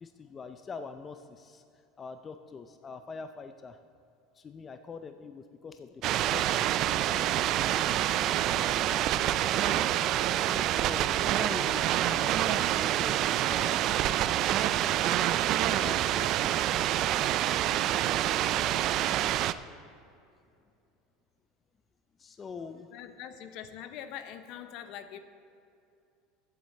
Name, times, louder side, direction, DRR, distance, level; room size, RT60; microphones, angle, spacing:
voice 1, 0.0-1.6 2.0-3.8 4.3-6.0 6.3-8.0 8.5-9.1 9.5-9.9 10.2-15.1 15.6-16.8 22.2-22.9, left 5 dB, 25° left, 8 dB, 0.5 m, -44 dB
sound 1, 6.0-19.5, right 12 dB, 50° right, 0.3 m, -27 dB
voice 2, 22.9-25.2, left 10 dB, 60° left, 10 dB, 0.8 m, -43 dB
15.0 x 7.7 x 4.2 m, 2.5 s
supercardioid pair, 110°, 0 cm